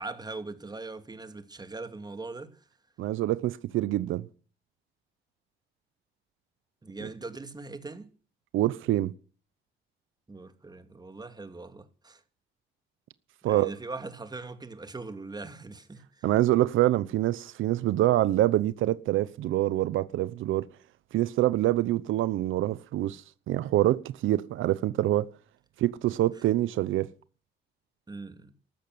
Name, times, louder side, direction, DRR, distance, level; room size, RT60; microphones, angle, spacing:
voice 1, 0.0-2.6 6.8-8.1 10.3-12.2 13.4-16.3 28.1-28.5, right 3 dB, 20° right, 2.5 m, -41 dB
voice 2, 3.0-4.3 8.5-9.1 13.4-13.7 16.2-20.7 21.1-25.3 25.8-27.1, right 14 dB, 80° right, 0.8 m, -25 dB
14.5 x 12.5 x 7.9 m
cardioid pair, 90°, 20 cm